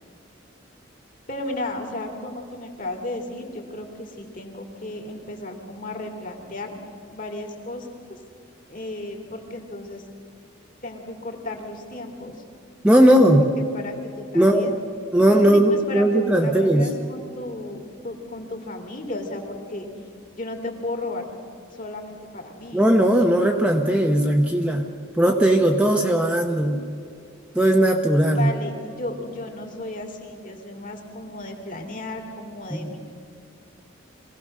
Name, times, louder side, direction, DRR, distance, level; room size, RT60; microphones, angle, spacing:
voice 1, 1.3-6.8 7.1-8.2 8.7-10.0 10.8-12.4 13.0-13.2 13.7-14.8 15.3-19.9 20.4-21.3 21.7-22.9 28.2-33.0, left 2 dB, 40° left, 3 dB, 2.7 m, -34 dB
voice 2, 12.8-13.5 14.3-14.8 15.1-16.9 22.7-24.9 25.2-26.9 27.5-28.5 32.7-32.9, right 1 dB, 5° right, 2 dB, 0.9 m, -18 dB
24.0 x 17.0 x 6.6 m, 2.4 s
head